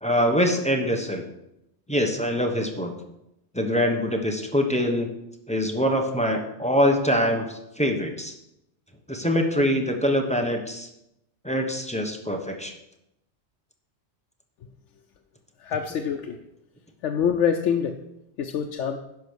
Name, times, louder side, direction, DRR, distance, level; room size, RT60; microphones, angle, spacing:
voice 1, 0.0-1.2 1.9-2.9 3.5-5.1 5.5-8.3 9.1-10.9 11.4-12.7, equal, 5° left, 3 dB, 0.9 m, -24 dB
voice 2, 15.6-16.4 17.0-18.0 18.4-19.0, left 7 dB, 90° left, 4 dB, 1.0 m, -25 dB
10.5 x 5.2 x 6.2 m, 0.85 s
omnidirectional pair, 1.2 m